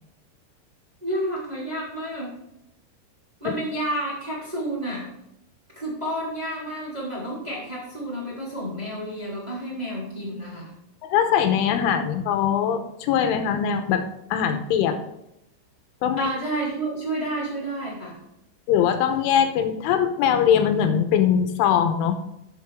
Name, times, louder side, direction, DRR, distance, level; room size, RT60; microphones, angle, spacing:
voice 1, 1.0-2.3 3.4-5.0 5.7-10.7 16.2-18.2, right 1 dB, 10° right, -6 dB, 2.9 m, -30 dB
voice 2, 11.0-15.0 16.0-16.3 18.7-22.2, left 8 dB, 85° left, 7 dB, 3.4 m, -21 dB
12.5 x 7.6 x 3.5 m, 0.83 s
omnidirectional pair, 5.5 m